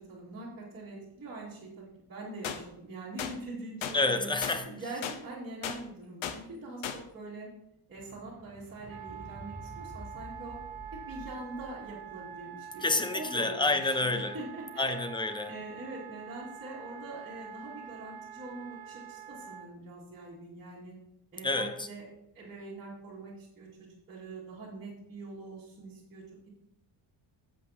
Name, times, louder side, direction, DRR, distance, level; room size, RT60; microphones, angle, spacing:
voice 1, 0.0-4.3 4.6-7.5 7.9-10.6 10.9-15.0 15.5-21.0 21.3-22.1 22.3-26.5, right 2 dB, 25° right, -9 dB, 2.1 m, -44 dB
sound 1, 2.4-2.6 3.2-3.3 3.8-4.0 4.4-4.6 5.0-5.2 5.6-5.8 6.2-6.4 6.8-7.0, left 8 dB, 85° left, 1.0 m, -35 dB
voice 2, 3.9-4.7 12.8-14.4 14.8-15.5 21.4-21.9, left 2 dB, 10° left, 8 dB, 0.5 m, -29 dB
sound 2, 7.9-14.4 15.2-15.3, equal, 5° right, 1.0 m, -50 dB
Wind instrument woodwind instrument, 8.9-19.7, right 9 dB, 55° right, 0.8 m, -46 dB
11.0 x 7.8 x 2.8 m, 0.77 s
cardioid pair, 180°, 46 cm